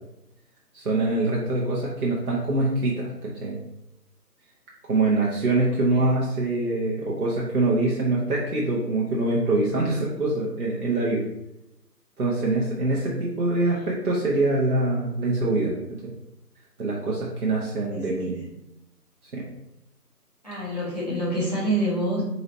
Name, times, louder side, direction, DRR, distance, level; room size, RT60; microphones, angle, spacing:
voice 1, 0.7-3.6 4.9-11.2 12.2-15.8 16.0-16.1 16.8-18.3 19.3-19.4, right 2 dB, 65° right, -5 dB, 0.9 m, -24 dB
voice 2, 13.4-13.9 17.9-18.4 20.4-22.2, right 1 dB, 25° left, -10 dB, 1.2 m, -28 dB
4.0 x 2.9 x 2.9 m, 0.86 s
figure-of-eight pair, 175°, 48 cm